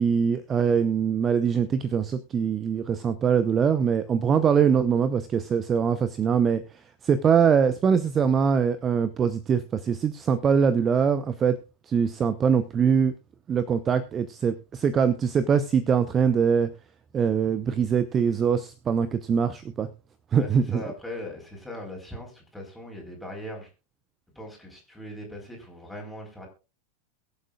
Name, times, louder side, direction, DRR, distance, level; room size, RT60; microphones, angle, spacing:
voice 1, 0.0-6.6 7.0-11.6 11.9-13.1 13.5-16.7 17.1-19.9 20.3-20.6, right 7 dB, 25° right, 14 dB, 0.7 m, -23 dB
voice 2, 20.3-23.7 24.3-26.5, left 1 dB, 5° left, 0 dB, 4.3 m, -39 dB
22.5 x 7.5 x 2.4 m, 0.30 s
figure-of-eight pair, 90°, 0 cm